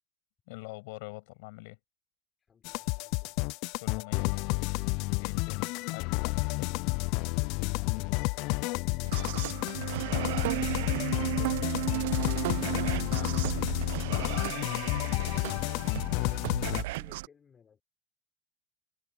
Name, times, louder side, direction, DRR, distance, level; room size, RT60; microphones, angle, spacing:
voice 1, 0.5-1.8 3.8-4.8 5.1-6.8 12.7-13.9, left 26 dB, 75° left, 6.0 m, -45 dB
voice 2, 2.4-3.4 16.8-17.8, left 6 dB, 20° left, 4.2 m, -62 dB
sound 1, 2.6-16.8, left 25 dB, 55° left, 0.3 m, -31 dB
sound 2, 9.0-17.3, right 20 dB, 90° right, 0.3 m, -34 dB
cardioid pair, 165°, 0 cm